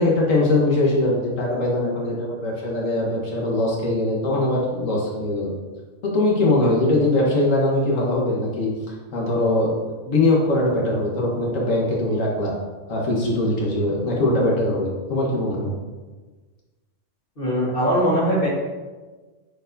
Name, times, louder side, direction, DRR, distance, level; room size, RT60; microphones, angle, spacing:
voice 1, 0.0-5.5 6.0-8.7 9.1-12.5 12.9-15.7, left 2 dB, 85° left, -3 dB, 1.6 m, -21 dB
voice 2, 17.4-18.5, equal, 45° left, -6 dB, 1.7 m, -20 dB
9.5 x 4.5 x 2.7 m, 1.3 s
omnidirectional pair, 1.3 m